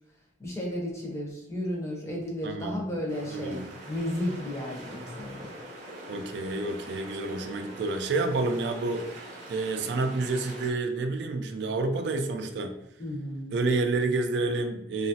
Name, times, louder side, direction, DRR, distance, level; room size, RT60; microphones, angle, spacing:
voice 1, 0.4-5.5 13.0-13.5, left 1 dB, 15° left, -2 dB, 0.7 m, -33 dB
voice 2, 2.4-2.9 3.3-3.7 6.1-12.8 13.5-15.1, right 3 dB, 70° right, 6 dB, 0.3 m, -29 dB
sound 1, 3.1-10.7, right 1 dB, 40° right, 0.7 m, -44 dB
2.9 x 2.4 x 2.7 m, 0.84 s
head